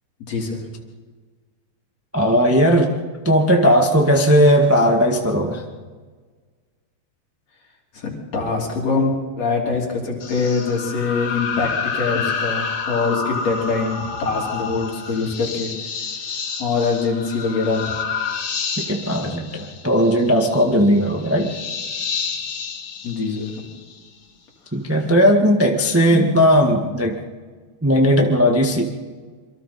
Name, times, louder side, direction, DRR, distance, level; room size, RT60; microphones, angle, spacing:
voice 1, 0.3-0.7 7.9-15.7 16.6-18.0 23.0-23.5, left 4 dB, 60° left, -1 dB, 4.5 m, -23 dB
voice 2, 2.1-3.0 3.2-5.6 18.8-21.5 24.7-27.2 27.8-28.8, equal, 10° right, 1 dB, 1.0 m, -17 dB
sound 1, 10.2-24.1, left 5 dB, 75° left, 3.4 m, -29 dB
26.5 x 24.0 x 4.3 m, 1.5 s
omnidirectional pair, 3.4 m